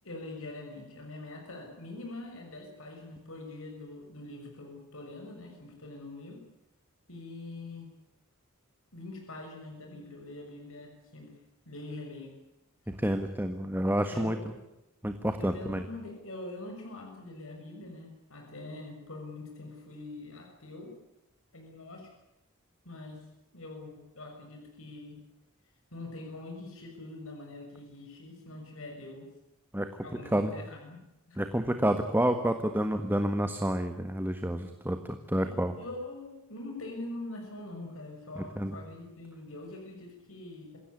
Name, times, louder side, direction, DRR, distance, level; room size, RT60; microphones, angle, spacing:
voice 1, 0.0-6.4 7.1-7.9 8.9-11.3 11.6-12.3 14.1-14.6 15.4-20.9 21.5-22.1 22.8-23.2 23.5-25.2 25.9-29.3 30.0-31.0 31.3-31.4 35.4-40.8, left 2 dB, 65° left, 2 dB, 6.6 m, -44 dB
voice 2, 12.9-14.4 15.0-15.8 29.7-29.9 30.3-30.5 31.4-35.7 38.6-38.8, right 1 dB, 10° right, 7 dB, 1.6 m, -29 dB
26.5 x 17.0 x 9.8 m, 0.91 s
head